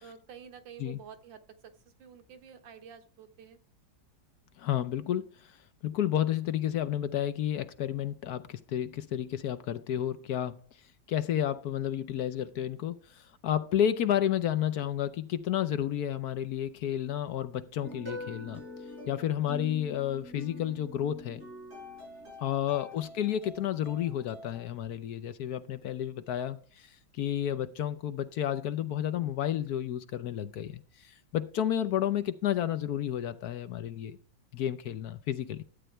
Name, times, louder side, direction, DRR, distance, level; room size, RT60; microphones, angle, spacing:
voice 1, 0.0-1.7 2.0-3.6 22.4-22.5 31.8-31.9, right 7 dB, 85° right, 1.9 m, -50 dB
voice 2, 4.6-5.3 5.8-10.6 11.1-18.6 19.1-21.4 22.4-26.9 27.2-34.2 34.5-35.6, left 10 dB, 65° left, 1.1 m, -31 dB
sound 1, 17.8-24.6, left 1 dB, 35° right, 6.7 m, -45 dB
12.0 x 8.9 x 3.3 m
omnidirectional pair, 2.0 m